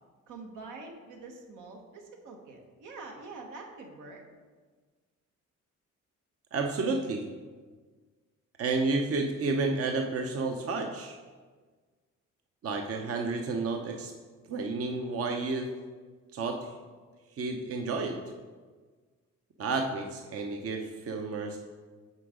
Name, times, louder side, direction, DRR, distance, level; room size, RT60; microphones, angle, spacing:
voice 1, 0.3-4.2, right 3 dB, 85° right, 2 dB, 1.3 m, -45 dB
voice 2, 6.5-7.3 8.6-11.2 12.6-14.1 14.5-15.8 16.3-16.7 17.4-18.2 19.6-21.6, right 3 dB, 50° right, 4 dB, 0.7 m, -31 dB
8.4 x 4.0 x 5.0 m, 1.4 s
cardioid pair, 90°, 30 cm